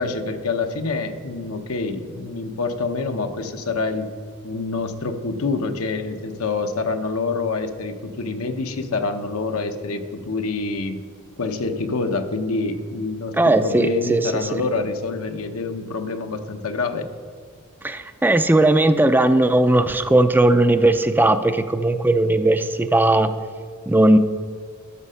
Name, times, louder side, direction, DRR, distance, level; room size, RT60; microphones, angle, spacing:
voice 1, 0.0-4.1 4.4-11.0 11.4-17.1, left 3 dB, 75° left, 6 dB, 0.9 m, -26 dB
voice 2, 13.4-14.2 17.8-23.3 23.9-24.2, right 2 dB, 10° right, 9 dB, 0.4 m, -17 dB
12.5 x 6.4 x 5.6 m, 2.1 s
head